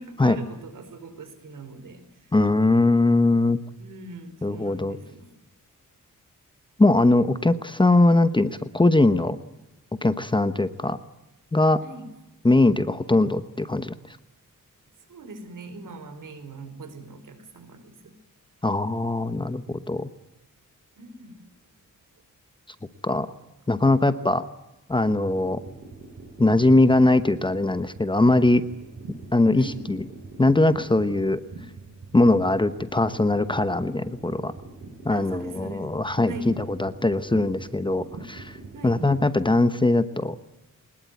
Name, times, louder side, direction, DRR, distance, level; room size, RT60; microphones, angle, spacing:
voice 1, 0.0-2.0 3.8-5.3 11.8-12.1 15.1-18.2 21.0-21.5 29.6-29.9 35.1-35.9 36.3-36.6 38.7-39.0, right 2 dB, 75° right, 9 dB, 4.9 m, -40 dB
voice 2, 2.3-3.6 4.4-5.0 6.8-9.4 10.0-11.0 11.5-11.8 12.4-14.2 18.6-20.1 23.0-23.3 23.7-24.5 24.9-25.6 26.4-28.6 29.3-30.0 30.4-31.4 32.1-34.5 35.0-38.6 38.8-40.3, left 2 dB, 15° left, 11 dB, 0.9 m, -21 dB
sound 1, 25.1-39.3, right 3 dB, 45° right, 5.0 m, -43 dB
23.5 x 20.5 x 9.3 m, 0.95 s
wide cardioid pair, 145°, 32 cm